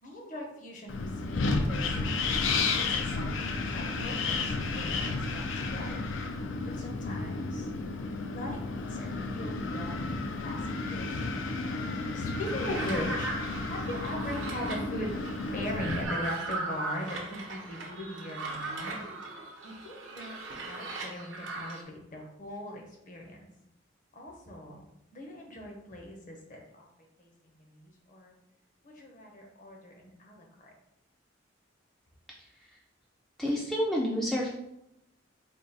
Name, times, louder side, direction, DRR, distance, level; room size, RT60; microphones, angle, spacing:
voice 1, 0.0-1.9 2.8-6.0 6.7-7.7 8.3-11.3 12.1-13.3 13.7-15.1 15.5-19.0 19.6-23.5 24.1-24.8 25.1-26.9 27.2-28.4 28.8-30.7, left 1 dB, 40° left, 0 dB, 0.8 m, -40 dB
Wind, 0.9-16.0, left 3 dB, 75° left, 0.4 m, -32 dB
sound 1, 12.3-21.8, right 2 dB, 85° right, 0.8 m, -38 dB
voice 2, 33.4-34.5, equal, ahead, -4 dB, 0.3 m, -28 dB
3.7 x 2.3 x 4.0 m, 0.83 s
head